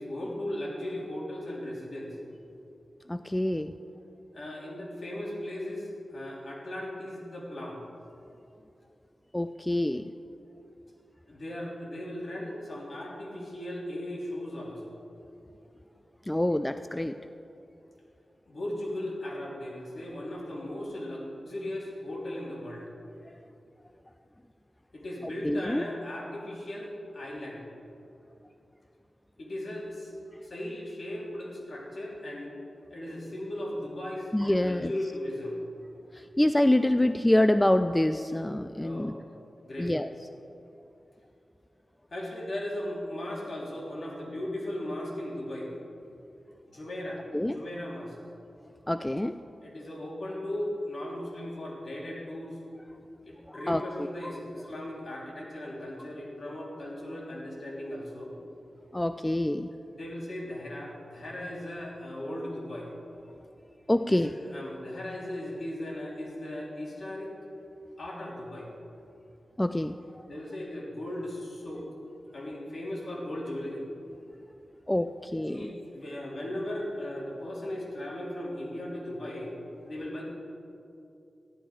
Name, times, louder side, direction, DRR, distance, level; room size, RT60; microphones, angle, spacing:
voice 1, 0.0-2.1 4.3-7.8 11.3-14.9 18.4-22.9 24.9-27.6 29.4-30.1 30.4-32.5 32.9-34.3 34.6-35.6 38.8-39.2 39.6-39.9 42.1-45.7 46.7-48.2 49.6-52.6 53.2-58.3 59.9-62.9 64.1-67.3 68.0-68.7 70.3-71.9 72.3-73.8 75.5-79.6 79.9-80.2, left 1 dB, 60° left, -3 dB, 3.3 m, -37 dB
voice 2, 3.1-3.7 9.3-10.1 16.3-17.2 25.4-25.8 34.3-34.9 36.1-39.1 39.8-40.1 47.3-47.6 48.9-49.4 53.5-53.9 58.9-59.7 63.9-64.3 69.6-70.0 74.9-75.7, left 1 dB, 15° left, 10 dB, 0.4 m, -26 dB
14.5 x 11.5 x 5.0 m, 2.7 s
cardioid pair, 60°, 0 cm